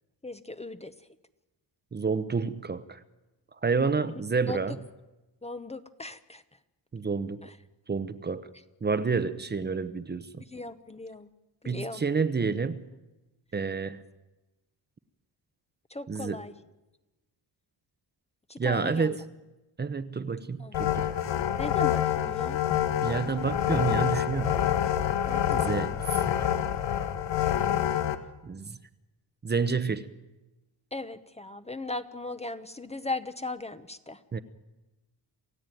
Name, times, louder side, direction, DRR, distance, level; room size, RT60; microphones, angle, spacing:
voice 1, 0.2-0.9 4.5-4.6 5.4-6.4 10.5-11.3 11.6-12.0 15.9-16.5 18.5-19.2 20.6-20.8 21.6-22.6 25.3-25.8 30.9-34.2, left 2 dB, 15° left, 11 dB, 0.8 m, -37 dB
voice 2, 1.9-3.0 3.6-4.8 6.9-7.5 7.9-8.5 8.8-10.3 11.6-12.8 13.5-14.0 16.1-16.4 18.6-19.3 19.8-21.1 23.0-24.6 25.5-26.3 28.4-28.8 29.4-30.1 34.3-34.4, right 5 dB, 25° right, 12 dB, 0.8 m, -29 dB
sound 1, 20.7-28.1, left 10 dB, 85° left, 1.7 m, -27 dB
28.0 x 15.5 x 9.2 m, 1.1 s
wide cardioid pair, 165°, 42 cm